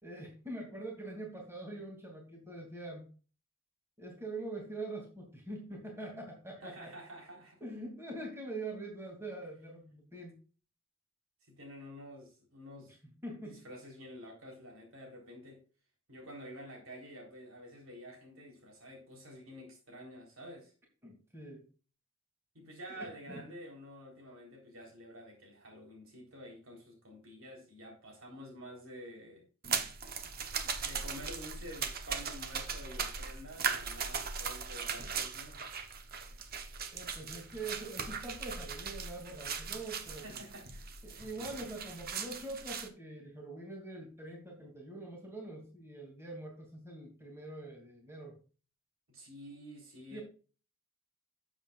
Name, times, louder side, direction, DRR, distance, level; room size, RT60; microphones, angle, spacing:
voice 1, 0.0-3.0 4.0-6.9 7.6-10.3 13.2-13.6 21.0-21.6 23.0-23.4 36.9-40.4 41.0-48.4 50.1-50.2, right 2 dB, 10° right, 2.6 m, -44 dB
voice 2, 6.6-7.6 11.5-13.0 13.4-15.6 16.1-20.7 22.5-29.4 30.8-35.7 40.2-40.9 49.1-50.2, equal, 65° right, 3.8 m, -49 dB
sound 1, 29.6-42.9, right 6 dB, 45° right, 1.0 m, -39 dB
12.5 x 7.4 x 2.4 m
head